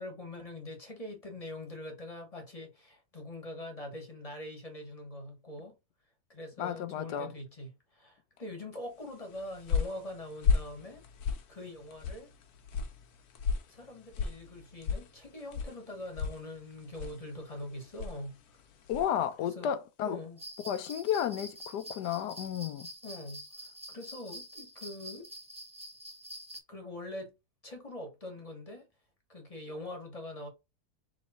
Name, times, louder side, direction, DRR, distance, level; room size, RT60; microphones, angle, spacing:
voice 1, 0.0-5.7 6.3-11.0 11.5-12.3 13.7-18.4 19.4-19.7 20.0-20.4 23.0-25.3 26.7-27.3 27.6-28.9 29.3-30.5, left 1 dB, 25° left, 1.2 m, -43 dB
voice 2, 6.6-7.3 18.9-20.2 20.6-22.9, left 9 dB, 85° left, 1.2 m, -32 dB
sound 1, 9.1-19.2, left 5 dB, 70° left, 1.2 m, -36 dB
sound 2, 20.4-26.6, equal, 5° right, 0.6 m, -46 dB
3.7 x 3.1 x 4.1 m
omnidirectional pair, 1.7 m